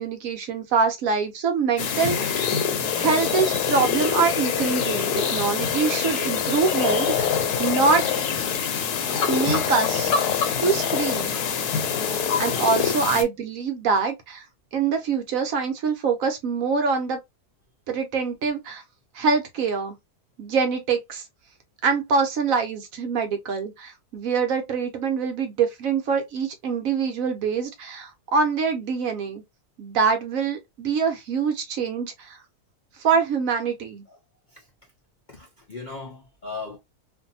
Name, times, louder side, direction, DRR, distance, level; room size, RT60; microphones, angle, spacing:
voice 1, 0.0-2.5 2.9-7.3 7.6-8.0 9.3-10.1 10.6-11.3 12.4-14.4 14.7-17.2 17.9-18.8 19.1-19.9 20.4-21.2 21.8-29.4 29.8-32.4 33.0-34.0, right 5 dB, 65° right, 1.0 m, -24 dB
sound 1, 1.8-13.2, left 7 dB, 85° left, 1.2 m, -25 dB
voice 2, 35.3-36.8, left 4 dB, 50° left, 0.5 m, -38 dB
2.6 x 2.6 x 2.6 m
omnidirectional pair, 1.7 m